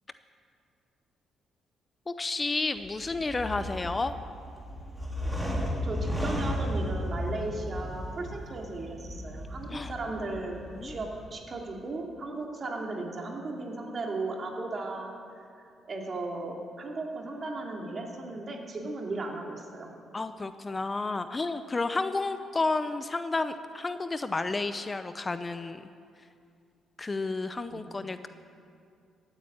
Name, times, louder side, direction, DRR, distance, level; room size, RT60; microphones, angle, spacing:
voice 1, 2.1-4.1 9.7-9.9 10.7-11.0 20.1-25.9 27.0-28.3, left 3 dB, 25° left, 11 dB, 0.6 m, -31 dB
sound 1, 2.8-11.3, equal, ahead, 2.8 m, -35 dB
voice 2, 5.8-15.5 15.9-19.9 27.7-27.9, right 2 dB, 40° right, 0 dB, 2.6 m, -36 dB
14.5 x 9.0 x 8.7 m, 2.4 s
cardioid pair, 90°, 0 cm